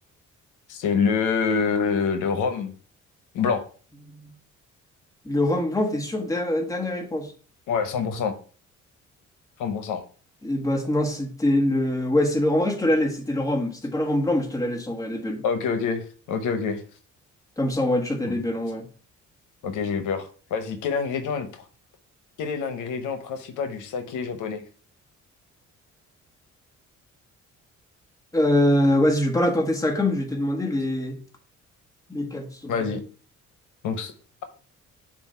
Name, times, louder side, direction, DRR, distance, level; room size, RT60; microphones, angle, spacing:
voice 1, 0.7-2.7 3.3-3.6 7.7-8.3 9.6-10.0 15.4-16.8 18.2-18.4 19.6-21.6 22.4-24.6 32.7-33.0 33.8-34.1, left 5 dB, 85° left, 7 dB, 0.9 m, -26 dB
voice 2, 5.2-7.3 10.4-15.4 17.6-18.8 28.3-31.2 32.1-32.9, left 1 dB, 10° left, 1 dB, 1.6 m, -24 dB
7.0 x 2.6 x 5.6 m, 0.40 s
cardioid pair, 90°, 30 cm